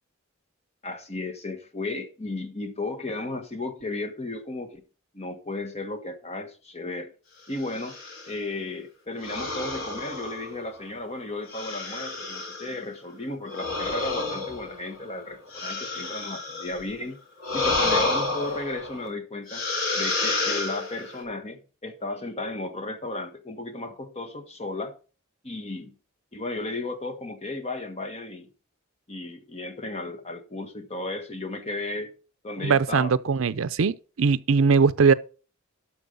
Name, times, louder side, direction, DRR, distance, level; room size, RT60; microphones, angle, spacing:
voice 1, 0.8-4.8 5.1-7.1 7.5-8.0 8.3-17.2 17.5-19.7 19.9-24.9 25.4-25.9 26.3-28.5 29.1-32.1 32.4-33.1, left 2 dB, 30° left, 1.4 m, -34 dB
sound 1, 7.6-8.3 9.2-10.9 11.5-12.8 13.5-16.8 17.4-19.1 19.5-21.2, left 3 dB, 65° left, 3.0 m, -30 dB
voice 2, 32.6-35.1, right 5 dB, 65° right, 0.5 m, -21 dB
12.5 x 4.6 x 5.2 m
head